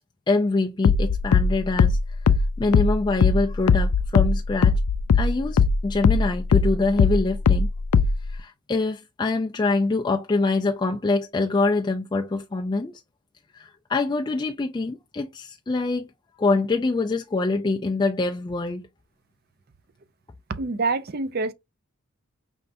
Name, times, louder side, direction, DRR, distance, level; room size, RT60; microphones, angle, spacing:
voice 1, 0.3-2.0 2.6-4.8 5.1-7.7 8.3-12.9 13.5-16.1 16.4-18.9, left 3 dB, 20° left, 0.3 m, -25 dB
sound 1, 0.8-5.8 6.0-8.3, left 5 dB, 90° left, 0.4 m, -19 dB
voice 2, 20.6-21.5, right 3 dB, 45° right, 0.5 m, -26 dB
5.3 x 3.2 x 2.6 m
head